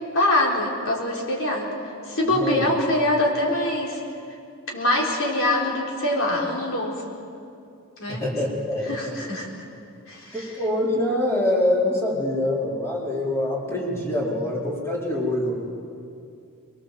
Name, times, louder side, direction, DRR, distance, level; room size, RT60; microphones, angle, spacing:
voice 1, 0.1-1.7 2.0-4.0 4.7-7.0 8.0-8.2 8.9-9.5 10.1-10.5, left 1 dB, 65° left, -1 dB, 4.2 m, -24 dB
voice 2, 2.2-2.6 8.1-9.2 10.3-15.6, left 1 dB, 10° left, -4 dB, 4.4 m, -25 dB
23.0 x 22.0 x 7.7 m, 2.5 s
head